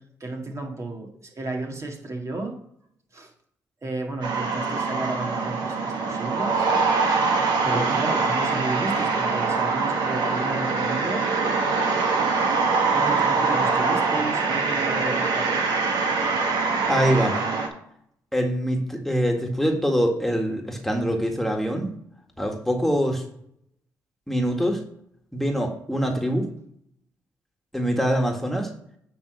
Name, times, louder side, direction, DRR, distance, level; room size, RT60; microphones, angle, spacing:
voice 1, 0.0-2.6 3.1-3.3 3.8-6.7 7.6-11.3 12.9-15.5, right 2 dB, 40° right, 1 dB, 2.0 m, -32 dB
sound 1, 4.2-17.7, right 4 dB, 70° right, 1.5 m, -23 dB
voice 2, 16.9-17.4 18.3-21.9 22.4-23.2 24.3-24.8 25.3-26.5 27.7-28.7, equal, 5° left, 2 dB, 1.8 m, -24 dB
9.4 x 3.5 x 6.3 m, 0.69 s
supercardioid pair, 50°, 8 cm